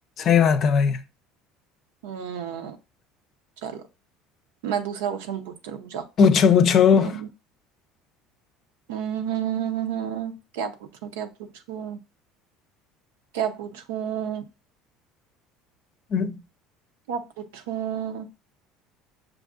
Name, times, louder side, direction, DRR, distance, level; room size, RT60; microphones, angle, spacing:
voice 1, 0.2-1.0 6.2-7.1 16.1-16.4, left 6 dB, 50° left, 0.5 m, -18 dB
voice 2, 2.0-2.8 3.6-3.8 4.6-6.0 6.9-7.3 8.9-10.7 11.0-11.3 11.7-12.0 13.3-14.4 17.1-17.2 17.5-18.3, right 9 dB, 85° right, 0.6 m, -30 dB
6.2 x 2.6 x 2.5 m
supercardioid pair, 85°, 0 cm